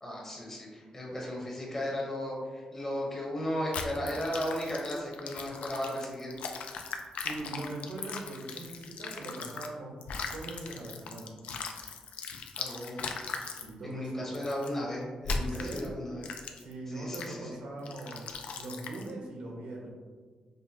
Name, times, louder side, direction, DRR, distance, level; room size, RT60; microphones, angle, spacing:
voice 1, 0.0-6.3 12.6-13.2 13.8-16.2 16.9-17.6, left 1 dB, 20° left, -3 dB, 0.8 m, -35 dB
sound 1, 3.7-9.7 10.0-13.7 14.3-14.7 15.2-15.9 16.2-16.7 17.1-17.3 17.9-19.1, left 4 dB, 80° left, 0.3 m, -39 dB
voice 2, 7.2-9.9 10.2-11.3 13.6-14.2 15.3-16.0 16.5-18.2 18.6-19.9, right 2 dB, 85° right, -1 dB, 0.9 m, -41 dB
5.2 x 2.2 x 2.7 m, 1.5 s
wide cardioid pair, 165°, 2 cm